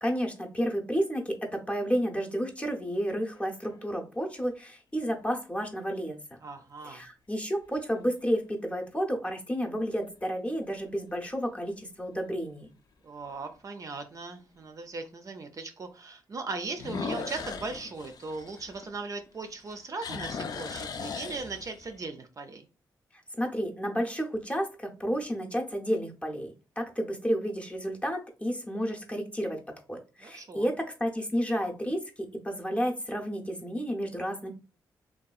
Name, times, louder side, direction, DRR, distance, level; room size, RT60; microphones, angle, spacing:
voice 1, 0.0-6.2 6.8-12.7 23.4-29.6 29.9-32.0 32.4-34.5, equal, 15° left, 1 dB, 0.6 m, -31 dB
sound 1, 3.1-3.8 4.4-4.5 9.8-10.2 10.7-10.8 11.3-11.4 11.7-11.8 13.3-13.4 16.7-19.3 19.6-22.0, left 5 dB, 55° left, 0.3 m, -38 dB
voice 2, 6.4-7.0 13.0-22.6 30.2-30.7, right 3 dB, 45° right, 6 dB, 0.4 m, -38 dB
2.6 x 2.3 x 2.3 m, 0.33 s
cardioid pair, 65°, 8 cm